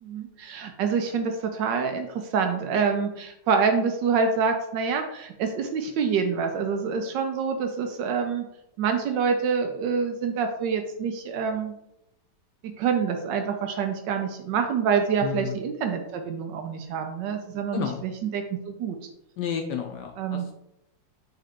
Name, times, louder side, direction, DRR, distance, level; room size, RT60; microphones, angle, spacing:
voice 1, 0.0-8.5 8.8-11.7 12.6-19.0 20.2-20.5, right 6 dB, 75° right, 6 dB, 1.1 m, -26 dB
voice 2, 15.2-15.6 17.7-18.0 19.4-20.5, left 7 dB, 75° left, 3 dB, 1.0 m, -31 dB
4.3 x 3.4 x 3.6 m, 0.82 s
omnidirectional pair, 2.2 m